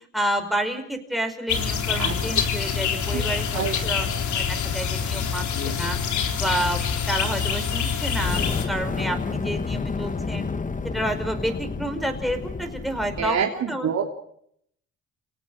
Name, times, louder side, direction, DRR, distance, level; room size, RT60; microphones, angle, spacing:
voice 1, 0.1-6.8 7.1-10.5 10.8-13.4 13.7-14.0, right 1 dB, ahead, 5 dB, 5.1 m, -29 dB
sound 1, 1.5-8.7, left 7 dB, 70° left, 4.0 m, -26 dB
Fire, 8.1-13.4, left 4 dB, 25° left, 1.4 m, -30 dB
voice 2, 13.2-14.0, right 7 dB, 60° right, 1 dB, 3.2 m, -26 dB
28.5 x 18.0 x 6.4 m, 0.69 s
cardioid pair, 90°, 30 cm